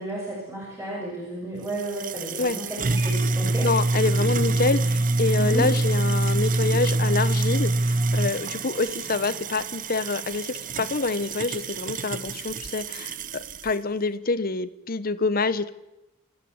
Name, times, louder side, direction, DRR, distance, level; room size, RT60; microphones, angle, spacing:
voice 1, 0.0-3.7 5.4-5.7, right 1 dB, 15° right, -4 dB, 6.4 m, -33 dB
sound 1, 1.7-13.7, right 2 dB, 40° right, 0.7 m, -26 dB
voice 2, 3.6-15.7, left 3 dB, 45° left, 14 dB, 1.1 m, -27 dB
26.5 x 14.5 x 8.0 m, 0.98 s
head